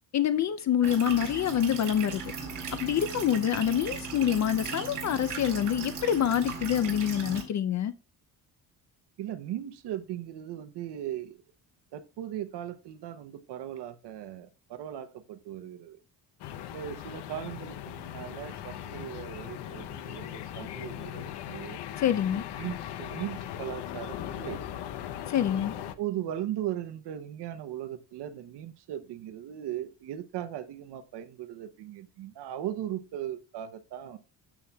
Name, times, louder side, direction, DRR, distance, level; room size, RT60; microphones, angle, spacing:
voice 1, 0.1-2.2 2.7-7.9 22.0-22.4 25.3-25.7, left 10 dB, 45° left, 0.5 m, -26 dB
sound 1, 0.8-7.4, right 5 dB, 45° right, 3.7 m, -37 dB
voice 2, 9.2-11.4 11.9-16.0 16.7-21.8 22.3-24.6 26.0-34.2, right 11 dB, 75° right, 0.8 m, -38 dB
sound 2, 16.4-25.9, left 11 dB, 70° left, 0.8 m, -39 dB
13.0 x 7.0 x 2.2 m
cardioid pair, 145°, 41 cm